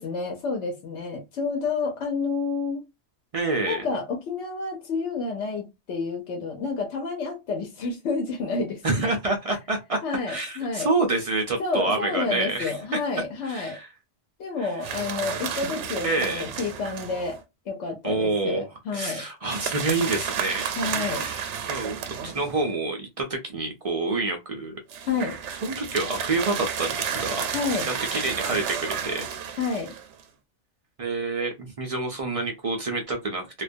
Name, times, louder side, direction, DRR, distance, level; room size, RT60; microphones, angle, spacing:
voice 1, 0.0-2.8 3.6-8.8 10.0-10.9 11.6-13.8 14.4-17.4 17.7-19.2 20.8-21.3 25.1-25.4 27.5-27.9 29.6-29.9, left 4 dB, 80° left, 1.0 m, -29 dB
voice 2, 3.3-3.8 8.8-10.0 10.3-13.0 13.4-13.9 14.6-14.7 16.0-16.5 18.0-18.6 18.9-20.7 21.1-24.8 25.6-27.5 27.9-29.3 31.0-33.6, right 3 dB, 60° right, 0.3 m, -27 dB
sound 1, 14.8-17.4 19.5-22.7 24.9-30.2, right 7 dB, 90° right, 0.9 m, -32 dB
2.3 x 2.2 x 2.5 m
omnidirectional pair, 1.2 m